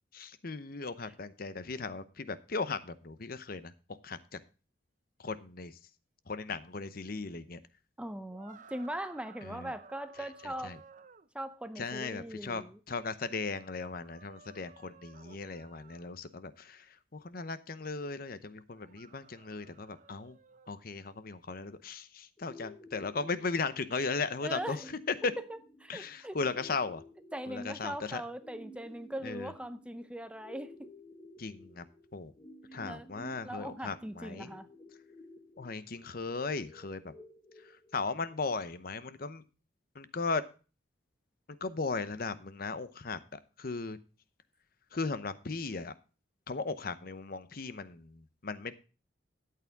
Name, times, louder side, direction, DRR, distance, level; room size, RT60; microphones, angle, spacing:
voice 1, 0.1-4.4 5.2-5.8 6.3-7.6 9.4-9.7 10.2-10.8 11.8-20.4 20.7-25.3 25.9-27.0 27.5-28.2 29.2-29.5 31.4-31.8 32.1-32.3 32.7-34.5 35.6-37.1 37.6-39.4 39.9-40.5 41.6-44.0 44.9-45.9 46.5-48.7, left 4 dB, 50° left, 0.8 m, -37 dB
voice 2, 8.0-10.8 11.3-12.8 24.4-24.9 25.5-26.4 27.3-30.9 32.9-33.1 33.4-34.7, right 1 dB, 5° right, 0.6 m, -40 dB
sound 1, 8.3-11.3 14.0-16.1 18.7-20.7, right 5 dB, 45° right, 0.8 m, -56 dB
sound 2, 22.4-38.4, left 1 dB, 20° left, 1.6 m, -54 dB
13.0 x 8.6 x 3.5 m
head